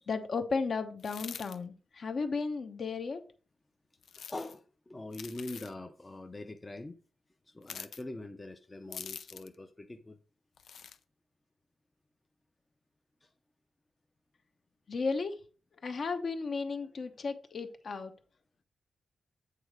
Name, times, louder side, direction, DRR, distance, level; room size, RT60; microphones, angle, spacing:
voice 1, 0.1-3.2 14.9-15.4 15.8-18.1, left 4 dB, 50° left, 0.9 m, -34 dB
sound 1, 1.0-1.6 4.0-4.6 5.1-5.7 7.6-8.0 8.9-9.6 10.6-11.0, left 7 dB, 85° left, 0.5 m, -45 dB
voice 2, 4.1-7.0 7.5-10.2 13.2-13.3, left 2 dB, 20° left, 0.6 m, -43 dB
8.4 x 4.1 x 4.8 m
wide cardioid pair, 145°, 0 cm